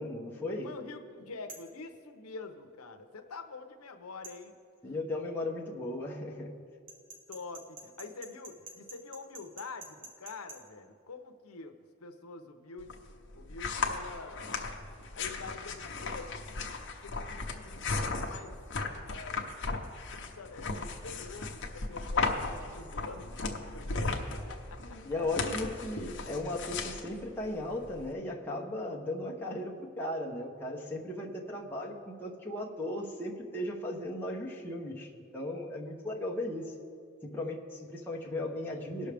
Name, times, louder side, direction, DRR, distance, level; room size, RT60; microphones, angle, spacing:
voice 1, 0.0-0.7 4.8-6.5 25.0-36.7 37.2-39.1, left 1 dB, 10° left, -3 dB, 0.9 m, -36 dB
voice 2, 0.6-4.6 7.3-13.0 13.3-14.6 15.1-16.7 17.0-18.5 19.0-25.0, left 3 dB, 85° left, 5 dB, 0.8 m, -46 dB
sound 1, 1.5-1.7 4.2-4.4 6.9-10.6, right 3 dB, 40° right, 1.2 m, -47 dB
sound 2, 12.8-28.1, left 3 dB, 55° left, 0.9 m, -36 dB
19.0 x 6.3 x 3.4 m, 2.3 s
head